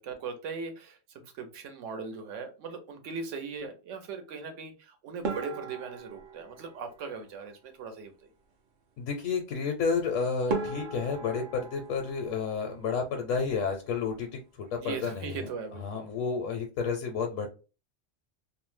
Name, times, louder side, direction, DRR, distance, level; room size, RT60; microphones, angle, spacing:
voice 1, 0.0-8.3 14.8-15.9, right 5 dB, 80° right, 6 dB, 1.0 m, -39 dB
sound 1, 5.2-7.7 10.0-10.1 10.5-13.3 13.5-14.3 14.6-14.8 15.1-15.2 15.8-16.2, right 3 dB, 55° right, 0.5 m, -38 dB
voice 2, 9.0-15.5 15.8-17.5, left 5 dB, 80° left, 3 dB, 1.0 m, -31 dB
2.6 x 2.0 x 3.1 m, 0.32 s
omnidirectional pair, 1.3 m